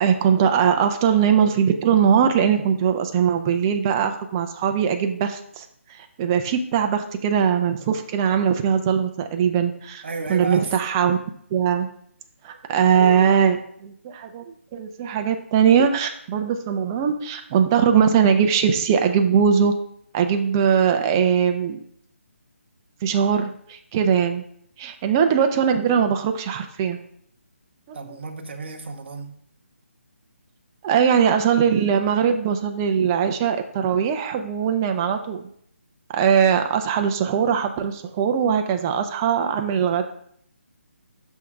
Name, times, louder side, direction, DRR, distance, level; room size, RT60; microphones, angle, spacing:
voice 1, 0.0-5.6 6.0-10.0 10.3-11.2 11.5-11.9 12.4-14.4 14.7-19.7 20.1-21.8 23.0-24.4 24.8-27.0 27.9-28.2 30.8-35.4 36.1-40.0, right 7 dB, 15° right, 6 dB, 0.4 m, -20 dB
voice 2, 10.0-10.8 27.9-29.4, right 3 dB, 50° right, 5 dB, 0.8 m, -33 dB
6.2 x 3.6 x 4.5 m, 0.67 s
figure-of-eight pair, 160°, 7 cm